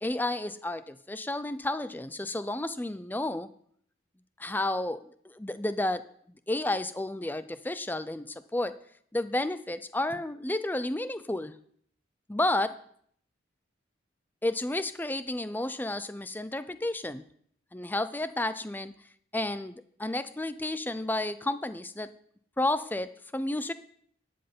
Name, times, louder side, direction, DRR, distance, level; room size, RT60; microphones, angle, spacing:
voice 1, 0.0-3.5 4.4-5.0 5.2-6.0 6.5-8.8 9.1-11.5 12.3-12.8 14.4-17.2 17.7-18.9 19.3-22.1 22.6-23.7, left 1 dB, 10° left, 13 dB, 0.5 m, -31 dB
12.0 x 7.8 x 5.4 m, 0.63 s
head